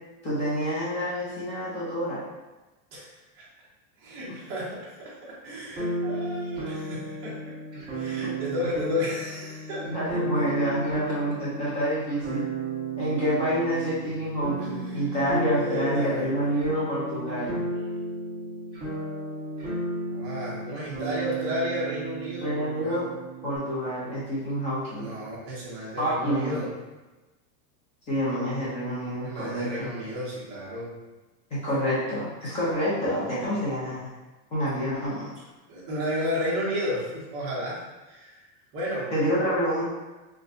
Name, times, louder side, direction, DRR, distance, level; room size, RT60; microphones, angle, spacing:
voice 1, 0.2-2.2 4.2-4.3 8.2-8.3 9.8-12.5 13.0-17.6 22.4-23.1 23.4-25.1 26.0-26.6 28.1-29.9 31.5-34.1 34.5-35.5 39.1-39.8, equal, 15° left, -9 dB, 0.5 m, -28 dB
voice 2, 2.9-3.4 4.0-5.1 5.4-7.5 7.9-9.9 14.6-15.0 15.5-16.3 20.1-23.0 24.9-26.7 29.2-30.9 35.7-37.8 38.1-38.3 38.7-39.1, left 1 dB, 25° right, -6 dB, 0.9 m, -32 dB
sound 1, 5.8-23.6, right 2 dB, 10° right, 1.1 m, -34 dB
5.0 x 2.2 x 2.5 m, 1.1 s
supercardioid pair, 165°, 49 cm